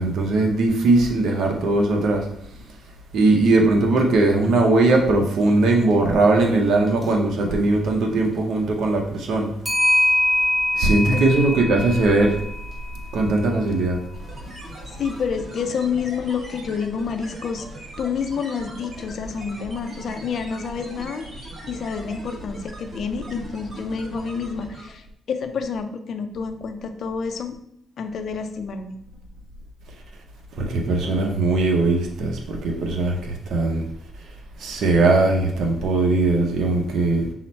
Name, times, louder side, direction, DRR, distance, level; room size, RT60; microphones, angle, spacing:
voice 1, 0.0-2.3 3.1-9.5 10.7-12.4 13.1-14.0 30.6-33.8 34.6-37.2, right 2 dB, 70° right, 1 dB, 0.7 m, -19 dB
Clock, 3.4-3.5 4.0-4.1 6.9-7.1 9.6-13.9, left 1 dB, 10° right, 1.1 m, -24 dB
sound 1, 14.1-25.0, right 1 dB, 35° right, 1.1 m, -40 dB
voice 2, 15.0-17.7 18.0-27.6 28.0-29.0, left 6 dB, 55° left, 7 dB, 0.5 m, -28 dB
5.7 x 2.1 x 4.2 m, 0.71 s
cardioid pair, 135°, 0 cm